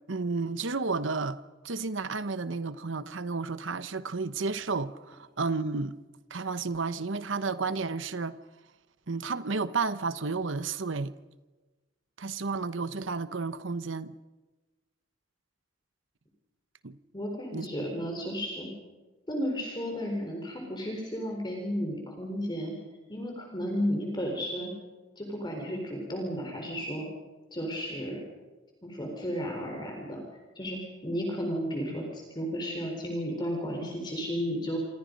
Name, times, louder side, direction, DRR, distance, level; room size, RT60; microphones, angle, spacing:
voice 1, 0.1-6.0 6.3-8.4 9.1-11.1 12.2-14.2 16.8-17.0 17.5-17.9, right 4 dB, 65° right, 0.9 m, -32 dB
voice 2, 17.1-18.7 19.3-22.8 23.1-24.7 25.2-27.1 27.5-28.2 28.8-30.2 30.6-34.8, equal, 20° left, 4.3 m, -33 dB
28.0 x 27.0 x 5.3 m
head